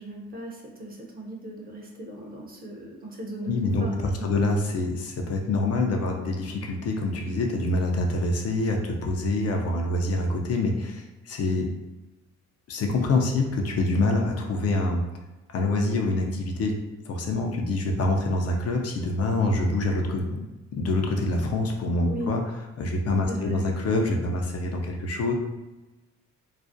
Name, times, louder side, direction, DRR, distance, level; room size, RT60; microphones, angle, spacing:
voice 1, 0.0-3.5 3.8-4.5 22.1-22.3 23.3-23.6, equal, 30° right, -1 dB, 0.6 m, -37 dB
voice 2, 3.4-11.7 12.7-15.0 15.5-16.7 17.1-20.4 20.7-22.4 22.8-25.3, left 2 dB, 55° left, 2 dB, 0.5 m, -26 dB
2.4 x 2.0 x 2.5 m, 1.1 s
cardioid pair, 90°, 30 cm